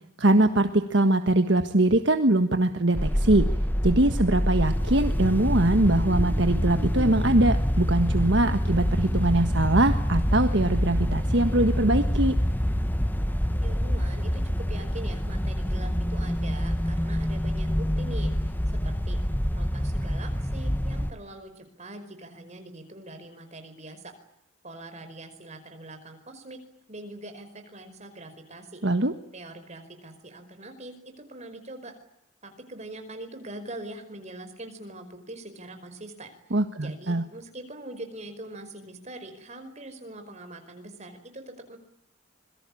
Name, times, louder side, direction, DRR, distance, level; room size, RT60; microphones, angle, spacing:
voice 1, 0.2-3.5 3.8-12.4 28.8-29.1 36.5-37.2, right 1 dB, 60° right, 8 dB, 1.6 m, -22 dB
sound 1, 2.9-21.1, equal, 10° left, 1.4 m, -26 dB
voice 2, 13.6-18.5 18.8-19.2 19.5-24.1 24.6-26.6 26.9-28.8 29.3-31.9 32.4-36.3 36.8-41.8, right 2 dB, 35° right, 7 dB, 5.1 m, -43 dB
26.5 x 22.5 x 8.6 m, 0.76 s
head